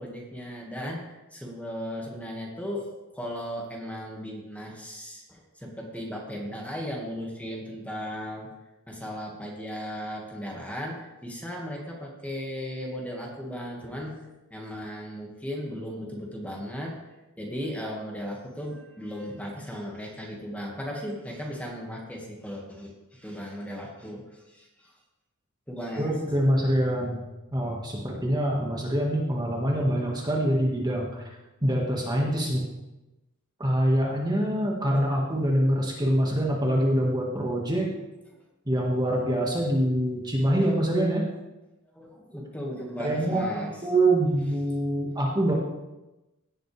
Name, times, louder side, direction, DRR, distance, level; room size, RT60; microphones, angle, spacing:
voice 1, 0.0-2.9 3.1-8.5 8.9-14.2 14.5-17.0 17.4-24.9 25.7-26.1 41.9-43.7, equal, 5° left, -2 dB, 1.9 m, -36 dB
voice 2, 26.0-27.2 27.5-31.3 31.6-32.6 33.6-37.9 38.7-41.2 43.0-43.5 43.8-45.5, right 1 dB, 20° right, -2 dB, 1.7 m, -25 dB
17.0 x 7.8 x 3.4 m, 1.0 s
head